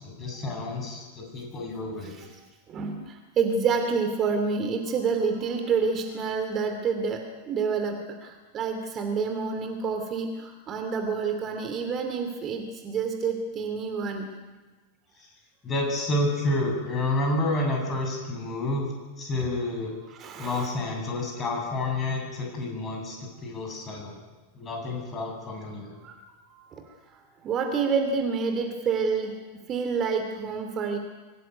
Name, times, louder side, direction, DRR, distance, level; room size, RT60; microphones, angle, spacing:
voice 1, 0.0-2.1 15.6-18.9 19.2-19.9 20.4-24.1 24.5-25.9, left 2 dB, 25° left, 1 dB, 7.6 m, -29 dB
voice 2, 2.0-2.4 2.7-14.3 20.1-20.7 25.9-26.2 26.5-26.8 27.4-29.3 29.7-31.0, right 5 dB, 30° right, 5 dB, 2.7 m, -28 dB
24.5 x 14.0 x 9.6 m, 1.2 s
figure-of-eight pair, 90°, 0 cm